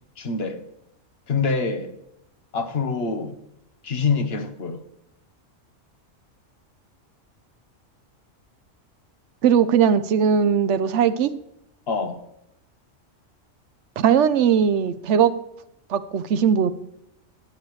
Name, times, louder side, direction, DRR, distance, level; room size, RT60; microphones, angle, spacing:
voice 1, 0.2-0.6 1.3-1.9 2.5-3.3 3.8-4.8 11.9-12.2, left 4 dB, 55° left, 1.2 m, -25 dB
voice 2, 9.4-11.3 14.0-15.3 15.9-16.7, right 7 dB, 70° right, 0.9 m, -19 dB
15.0 x 7.7 x 3.2 m
omnidirectional pair, 1.3 m